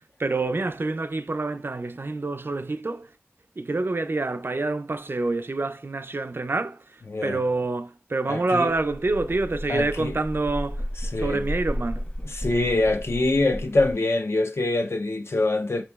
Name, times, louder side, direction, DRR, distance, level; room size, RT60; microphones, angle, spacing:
voice 1, 0.2-3.1 3.6-6.8 7.2-10.8 11.2-12.0, right 3 dB, 55° right, 0.3 m, -27 dB
voice 2, 7.1-7.4 8.3-8.7 9.7-10.1 11.1-11.4 12.2-15.8, left 2 dB, 70° left, 0.5 m, -24 dB
sound 1, 8.7-13.9, equal, 35° left, 1.0 m, -33 dB
6.0 x 2.9 x 2.2 m
wide cardioid pair, 40°, 4 cm